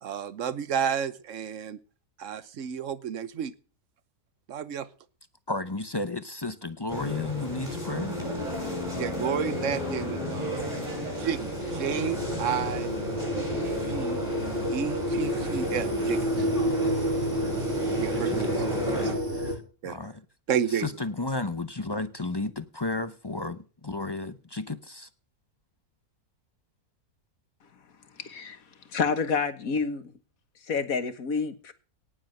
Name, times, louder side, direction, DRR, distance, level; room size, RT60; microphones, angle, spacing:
voice 1, 0.0-1.8 2.2-3.5 4.5-4.9 9.0-10.7 11.2-12.9 13.5-14.2 14.7-16.5 18.0-19.1 19.8-20.0 20.5-20.9, right 8 dB, 55° right, 1.2 m, -31 dB
voice 2, 5.5-8.2 18.2-19.1 19.4-20.2 20.8-25.1, left 3 dB, 30° left, 0.5 m, -33 dB
sound 1, 6.9-19.1, equal, 20° right, 6.9 m, -33 dB
sound 2, 8.0-11.7, left 8 dB, 80° left, 2.2 m, -39 dB
sound 3, 11.2-19.6, equal, 35° right, 3.6 m, -30 dB
voice 3, 28.2-28.6 28.9-30.1 30.7-31.7, left 5 dB, 60° left, 1.8 m, -28 dB
18.0 x 7.3 x 6.5 m
omnidirectional pair, 1.7 m